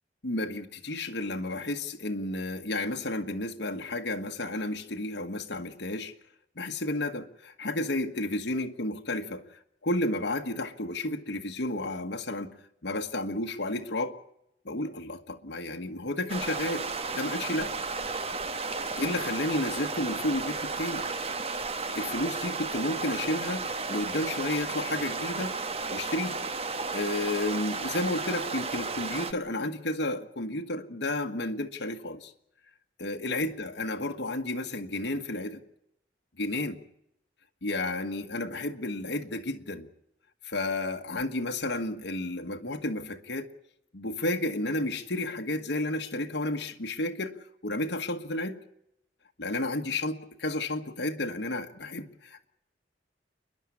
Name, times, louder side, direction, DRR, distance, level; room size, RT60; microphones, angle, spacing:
voice 1, 0.2-6.1 6.6-12.6 12.8-14.2 14.6-16.9 17.1-17.8 19.0-21.1 21.9-25.6 25.9-26.4 26.9-32.3 33.0-35.6 36.4-36.8 37.6-39.9 40.4-43.5 43.9-47.4 47.6-48.6 49.4-52.5, left 2 dB, 75° left, 3 dB, 1.4 m, -32 dB
sound 1, 16.3-29.3, right 4 dB, 35° right, 1.1 m, -33 dB
29.5 x 11.0 x 8.4 m, 0.79 s
head